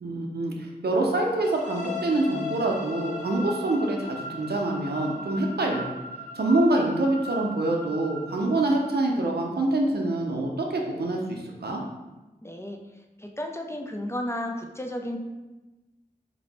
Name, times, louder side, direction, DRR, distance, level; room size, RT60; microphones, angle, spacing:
voice 1, 0.0-5.9 6.3-11.8, right 2 dB, 80° right, 0 dB, 0.6 m, -26 dB
sound 1, 1.4-9.2, left 1 dB, 50° left, 0.7 m, -38 dB
voice 2, 12.4-12.8 13.2-15.2, left 1 dB, 15° left, 3 dB, 0.4 m, -33 dB
3.0 x 2.6 x 4.1 m, 1.1 s
wide cardioid pair, 50°, 16 cm